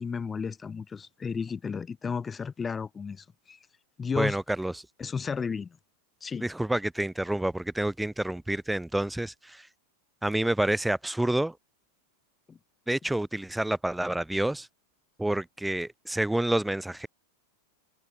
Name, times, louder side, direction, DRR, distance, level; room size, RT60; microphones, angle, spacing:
voice 1, 0.0-3.6 4.0-4.4 5.0-5.8 6.2-6.5 12.5-12.6, left 5 dB, 15° left, 7.7 m, -33 dB
voice 2, 4.2-4.8 6.4-9.7 10.2-11.5 12.9-14.7 15.2-17.1, right 1 dB, 5° right, 3.6 m, -28 dB
figure-of-eight pair, 90°, 0 cm